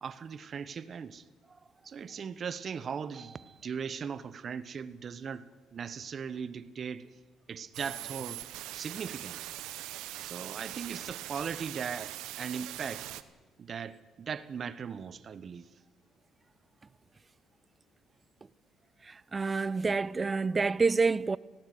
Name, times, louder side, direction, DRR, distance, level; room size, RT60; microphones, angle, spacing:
voice 1, 0.0-1.2 1.8-7.1 7.5-8.4 8.7-9.5 10.2-13.1 13.6-15.7, right 6 dB, 45° right, 1.3 m, -39 dB
sound 1, 7.7-13.2, right 15 dB, 85° right, 1.1 m, -41 dB
voice 2, 19.0-21.4, right 4 dB, 30° right, 0.7 m, -28 dB
18.0 x 18.0 x 9.6 m
cardioid pair, 85°, 0 cm